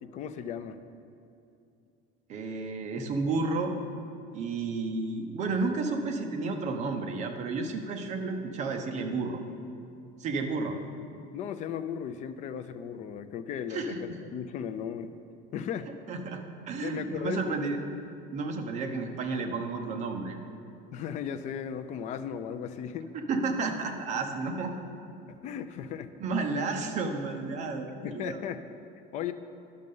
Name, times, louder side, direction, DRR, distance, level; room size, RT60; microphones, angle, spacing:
voice 1, 0.0-0.8 11.3-15.2 15.5-15.9 16.8-17.6 20.9-23.1 25.4-26.1 28.0-28.6 29.1-29.3, left 8 dB, 35° left, 9 dB, 0.4 m, -36 dB
voice 2, 2.3-3.7 4.3-9.4 10.2-10.8 13.7-14.0 16.1-17.8 18.3-20.4 23.1-24.7 26.2-28.4, right 3 dB, 35° right, 4 dB, 0.8 m, -32 dB
10.5 x 6.5 x 5.4 m, 2.6 s
cardioid pair, 170°, 20 cm